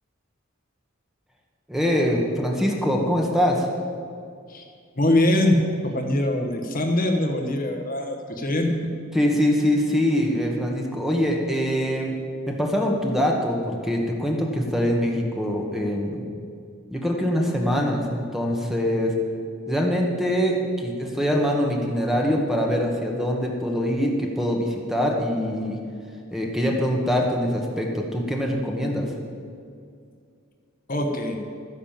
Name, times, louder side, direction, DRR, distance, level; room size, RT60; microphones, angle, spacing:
voice 1, 1.7-3.7 9.1-12.2 12.5-16.2 16.9-19.2 19.7-25.8 26.3-29.1, equal, ahead, 0 dB, 1.4 m, -23 dB
voice 2, 5.0-8.9 30.9-31.4, left 1 dB, 45° left, 3 dB, 1.3 m, -23 dB
12.0 x 10.5 x 7.4 m, 2.3 s
head